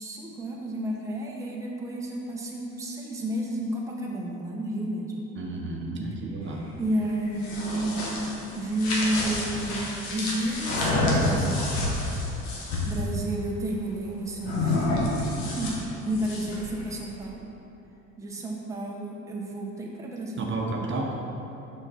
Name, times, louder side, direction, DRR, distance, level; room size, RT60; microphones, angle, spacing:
voice 1, 0.0-5.1 6.8-8.1 8.5-11.7 12.8-17.4 18.2-20.6, right 1 dB, 10° right, -3 dB, 0.9 m, -31 dB
voice 2, 5.4-6.7 20.4-21.1, right 2 dB, 40° right, -1 dB, 1.0 m, -31 dB
sound 1, 7.2-13.0 14.4-16.7, left 2 dB, 90° left, 1.6 m, -28 dB
6.7 x 6.0 x 4.2 m, 2.9 s
supercardioid pair, 100°, 31 cm